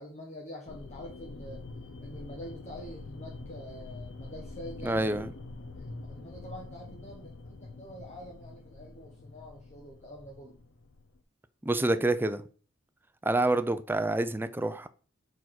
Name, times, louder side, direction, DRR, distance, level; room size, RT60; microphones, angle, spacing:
voice 1, 0.0-1.6 2.0-5.4 5.7-10.6, equal, 35° left, 1.1 m, -46 dB
sound 1, 0.7-11.2, left 3 dB, 65° left, 0.6 m, -45 dB
voice 2, 4.8-5.3 11.6-12.4 13.2-14.9, right 2 dB, 10° right, 0.4 m, -27 dB
4.7 x 4.7 x 5.9 m
head